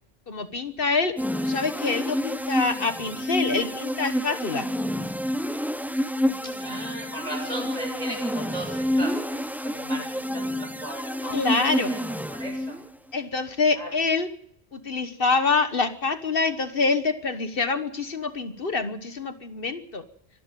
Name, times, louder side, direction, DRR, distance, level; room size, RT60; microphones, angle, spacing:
voice 1, 0.3-1.1 1.4-4.7 11.3-11.9 13.1-14.3 14.7-20.0, left 4 dB, 60° left, 10 dB, 1.5 m, -26 dB
sound 1, 1.2-12.9, equal, ahead, 0.7 m, -28 dB
voice 2, 6.4-11.6 11.8-12.8 13.7-13.9, right 1 dB, 40° right, 3 dB, 7.1 m, -37 dB
25.5 x 11.5 x 9.1 m, 0.71 s
omnidirectional pair, 1.1 m